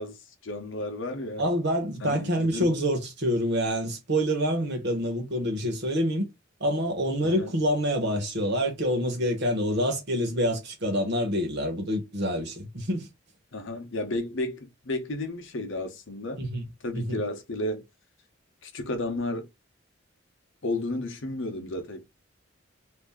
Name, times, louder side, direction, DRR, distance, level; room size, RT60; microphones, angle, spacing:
voice 1, 0.0-1.4 2.0-2.7 7.2-7.5 13.5-16.5 16.8-17.9 18.6-19.5 20.6-22.1, left 2 dB, 65° left, 0.9 m, -33 dB
voice 2, 1.4-6.3 6.6-13.1 16.4-16.6 16.9-17.2, equal, 60° right, 1.3 m, -27 dB
2.7 x 2.6 x 3.6 m
head